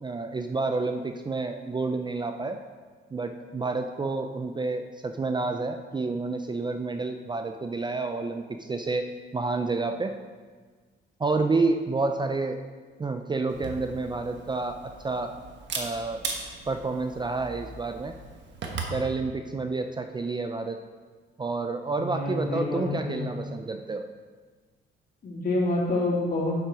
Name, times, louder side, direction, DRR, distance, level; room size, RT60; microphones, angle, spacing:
voice 1, 0.0-2.6 3.1-9.1 9.3-10.2 11.2-12.6 13.0-15.3 15.8-16.2 16.7-18.1 18.9-20.8 21.4-24.1, right 3 dB, 20° right, 6 dB, 0.4 m, -29 dB
Camera, 13.5-19.0, right 4 dB, 65° right, 1.3 m, -38 dB
voice 2, 21.9-23.3 25.2-26.6, left 2 dB, 50° left, -4 dB, 2.7 m, -27 dB
7.3 x 6.1 x 4.9 m, 1.5 s
cardioid pair, 90°, 20 cm